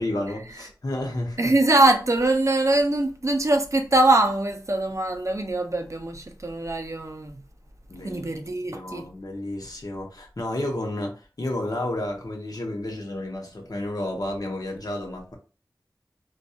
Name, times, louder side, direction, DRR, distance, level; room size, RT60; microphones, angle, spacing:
voice 1, 0.0-1.5 7.9-8.2 8.7-15.4, left 1 dB, 55° left, 0.7 m, -31 dB
voice 2, 1.4-7.4 8.0-9.1, right 2 dB, 40° right, 0.4 m, -22 dB
2.2 x 2.2 x 2.6 m
wide cardioid pair, 40°, 8 cm